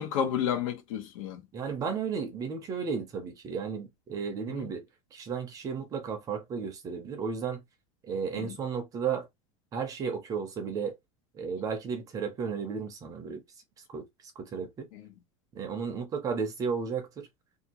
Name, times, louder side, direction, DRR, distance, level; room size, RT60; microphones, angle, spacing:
voice 1, 0.0-1.4 4.5-4.7 8.3-8.5 14.9-15.1, left 8 dB, 80° left, 1.0 m, -31 dB
voice 2, 1.5-4.8 5.1-7.6 8.0-9.3 9.7-11.0 11.3-13.4 13.9-14.1 14.4-14.9 15.5-17.3, right 6 dB, 20° right, 0.5 m, -33 dB
2.6 x 2.5 x 2.9 m
supercardioid pair, 170°, 17 cm